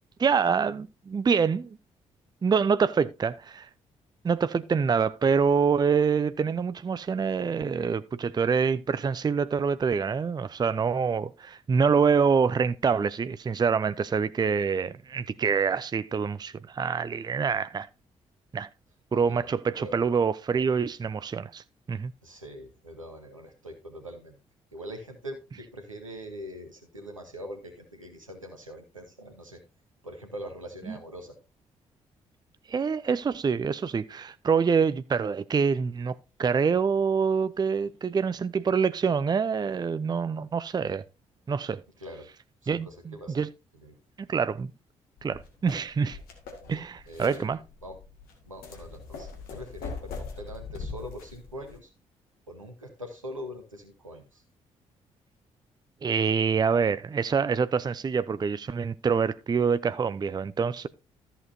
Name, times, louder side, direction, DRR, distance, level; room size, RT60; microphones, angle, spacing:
voice 1, 0.2-1.8 2.4-3.7 4.2-17.9 18.5-18.7 19.1-21.6 21.9-22.1 30.9-31.0 32.7-41.0 41.5-41.8 42.7-43.5 44.2-44.7 45.2-46.2 46.7-47.6 56.0-60.9, right 6 dB, 25° right, 0.5 m, -26 dB
voice 2, 19.1-19.5 19.8-20.0 22.2-24.3 24.7-29.6 30.0-31.3 42.0-42.3 42.6-43.5 43.7-44.0 46.6-47.5 47.8-48.0 48.4-51.9 52.5-54.4, equal, 90° right, 1.4 m, -43 dB
sound 1, 45.2-51.8, left 4 dB, 65° left, 1.9 m, -42 dB
13.5 x 7.1 x 2.7 m
figure-of-eight pair, 40°, 16 cm